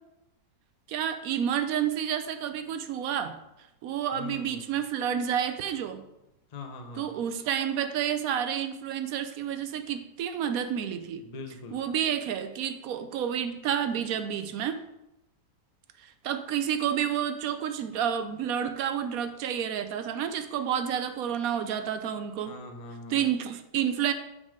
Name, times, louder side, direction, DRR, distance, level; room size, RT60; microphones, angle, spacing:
voice 1, 0.9-3.4 3.8-6.0 7.0-11.2 11.7-14.8 16.0-22.5 23.1-24.1, right 9 dB, 65° right, 8 dB, 1.0 m, -30 dB
voice 2, 4.1-4.7 6.5-7.1 11.2-11.8 22.5-23.3, left 3 dB, 40° left, 4 dB, 0.5 m, -42 dB
8.7 x 3.8 x 5.0 m, 0.90 s
omnidirectional pair, 1.8 m